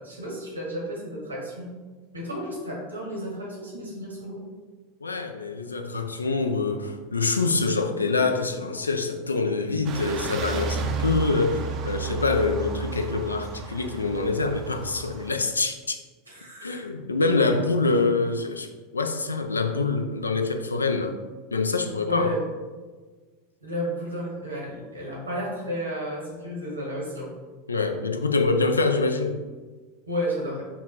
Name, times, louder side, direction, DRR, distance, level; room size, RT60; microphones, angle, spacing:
voice 1, 0.0-1.7 2.1-4.4 16.3-16.8 22.0-22.4 23.6-27.3 30.1-30.6, equal, 90° right, -4 dB, 1.2 m, -32 dB
voice 2, 5.0-16.0 16.6-18.7 18.9-21.2 21.5-22.3 27.7-29.4, left 3 dB, 85° left, 6 dB, 0.3 m, -25 dB
sound 1, 9.8-15.3, right 5 dB, 40° right, 0.4 m, -32 dB
5.6 x 2.2 x 2.8 m, 1.4 s
figure-of-eight pair, 85°, 0 cm